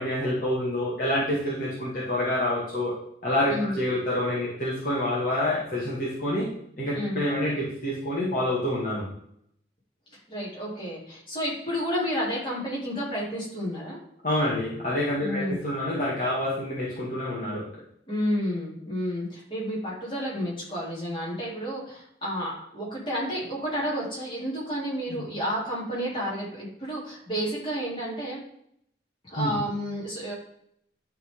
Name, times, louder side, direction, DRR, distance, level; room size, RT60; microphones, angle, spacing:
voice 1, 0.0-2.9 3.2-6.5 6.8-9.0 14.2-17.7 25.1-25.3 29.4-29.6, left 1 dB, 50° left, -7 dB, 2.1 m, -27 dB
voice 2, 10.3-14.0 15.2-15.6 18.1-28.4 29.3-30.3, equal, 30° left, -6 dB, 3.4 m, -31 dB
11.0 x 4.1 x 3.8 m, 0.70 s
head